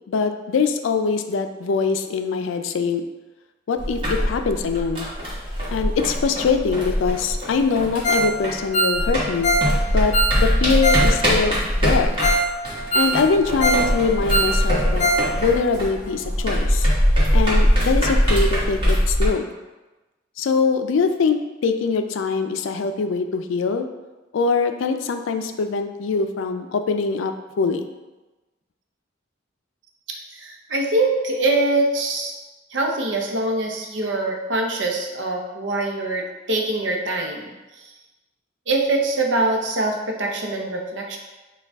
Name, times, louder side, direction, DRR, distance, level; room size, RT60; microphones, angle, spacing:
voice 1, 0.1-3.0 3.7-5.1 5.7-9.5 9.9-12.1 12.9-15.1 15.4-16.9 17.3-19.6 20.4-21.4 21.6-23.9 24.3-27.9, left 5 dB, 90° left, 7 dB, 0.4 m, -23 dB
sound 1, 3.8-8.7 8.9-19.3, equal, 25° right, 1.3 m, -22 dB
Ringtone, 8.0-8.3 8.6-11.1 11.4-11.5 11.9-12.0 12.2-12.5 12.8-13.9 14.2-15.3 15.5-15.6 16.1-16.2, right 1 dB, 40° left, 0.6 m, -21 dB
voice 2, 30.3-32.3 32.7-37.9 38.7-41.2, right 2 dB, 65° right, 1 dB, 0.7 m, -23 dB
6.4 x 2.3 x 3.4 m, 1.1 s
head